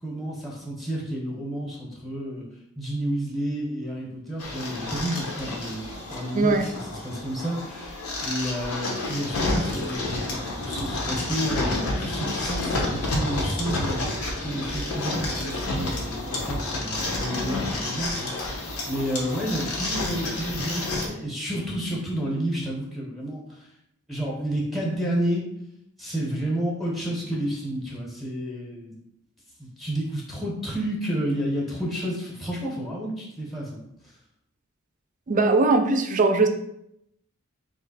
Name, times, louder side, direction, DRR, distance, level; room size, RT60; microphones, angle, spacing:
voice 1, 0.0-2.5 2.8-14.0 14.4-23.7 24.1-25.4 26.0-28.9 29.6-33.8, right 1 dB, ahead, -3 dB, 0.8 m, -31 dB
sound 1, 4.4-21.1, left 2 dB, 85° left, 0.8 m, -30 dB
voice 2, 6.3-6.7 35.3-36.5, right 3 dB, 35° right, 6 dB, 0.4 m, -20 dB
3.0 x 2.5 x 4.0 m, 0.77 s
head